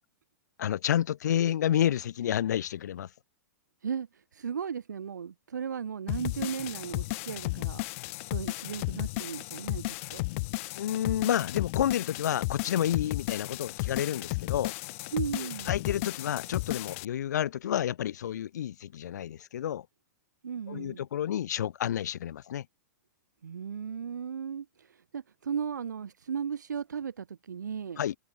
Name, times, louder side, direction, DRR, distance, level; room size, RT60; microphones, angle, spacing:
voice 1, 0.6-3.1 10.7-14.7 15.7-19.9 20.7-22.6 28.0-28.1, left 10 dB, 70° left, 1.0 m, -30 dB
voice 2, 3.8-7.9 8.3-10.3 15.1-15.8 20.4-21.1 23.4-28.0, right 7 dB, 85° right, 2.0 m, -36 dB
sound 1, 6.1-17.0, left 24 dB, 50° left, 3.5 m, -34 dB
hypercardioid pair, 130°, 9 cm